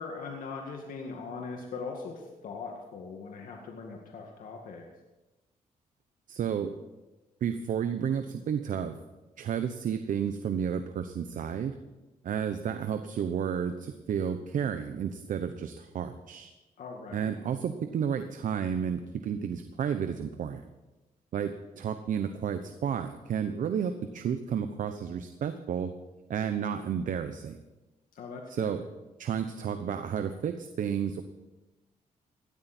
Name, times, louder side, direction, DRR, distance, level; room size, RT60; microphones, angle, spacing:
voice 1, 0.0-4.8 16.8-17.3 28.1-28.7, left 4 dB, 75° left, 1 dB, 2.1 m, -40 dB
voice 2, 6.3-6.7 7.4-9.0 9.4-11.8 12.2-16.5 17.1-20.6 21.3-25.9 26.3-27.6 28.5-28.8 29.2-31.2, right 8 dB, 65° right, 9 dB, 0.9 m, -31 dB
18.0 x 13.0 x 4.4 m, 1.1 s
cardioid pair, 100°, 14 cm